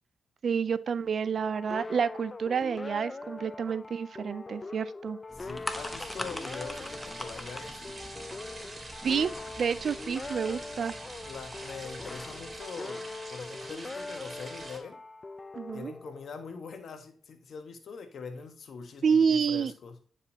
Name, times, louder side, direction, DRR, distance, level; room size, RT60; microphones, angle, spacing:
voice 1, 0.4-5.2 9.0-9.3 9.6-10.9 15.6-15.9 19.0-19.7, right 6 dB, 60° right, 0.4 m, -29 dB
sound 1, 1.4-16.7, left 3 dB, 35° left, 0.4 m, -42 dB
voice 2, 5.3-7.9 11.2-15.0 15.7-20.0, left 5 dB, 65° left, 1.3 m, -43 dB
sound 2, 5.3-12.6, left 1 dB, 10° left, 1.0 m, -43 dB
sound 3, 5.7-14.8, right 2 dB, 35° right, 2.7 m, -45 dB
9.6 x 5.0 x 2.8 m
supercardioid pair, 50°, 0 cm